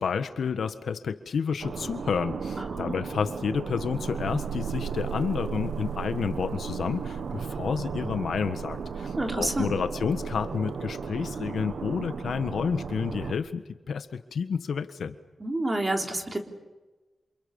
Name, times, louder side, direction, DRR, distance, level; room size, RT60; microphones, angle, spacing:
voice 1, 0.0-15.1, left 6 dB, 75° left, 10 dB, 1.5 m, -30 dB
sound 1, 1.6-13.3, right 6 dB, 65° right, 1.4 m, -34 dB
voice 2, 9.2-9.7 15.4-16.4, right 1 dB, 20° right, 3 dB, 3.5 m, -28 dB
28.5 x 28.0 x 7.2 m, 1.2 s
wide cardioid pair, 160°, 0 cm